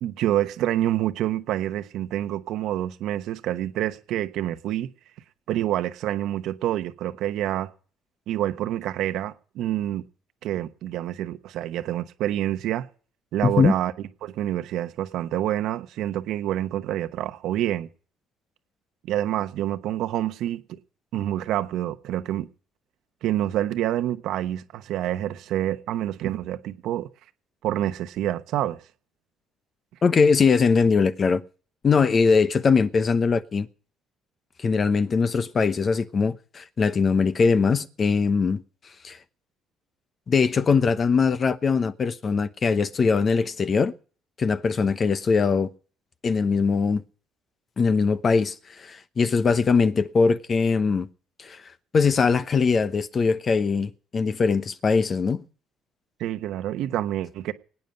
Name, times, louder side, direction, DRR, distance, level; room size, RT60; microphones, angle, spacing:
voice 1, 0.0-4.9 5.5-7.7 8.3-10.0 10.4-12.9 13.3-13.9 14.2-17.9 19.1-20.8 21.1-22.5 23.2-27.1 27.6-28.8 56.2-57.5, right 12 dB, 75° right, 1.0 m, -27 dB
voice 2, 13.4-13.7 30.0-31.4 31.8-33.7 34.6-38.6 39.0-39.2 40.3-43.9 44.4-45.7 46.2-47.0 47.8-51.1 51.4-51.6 51.9-55.4, left 5 dB, 40° left, 0.9 m, -21 dB
20.5 x 9.4 x 5.2 m
cardioid pair, 95°, 0 cm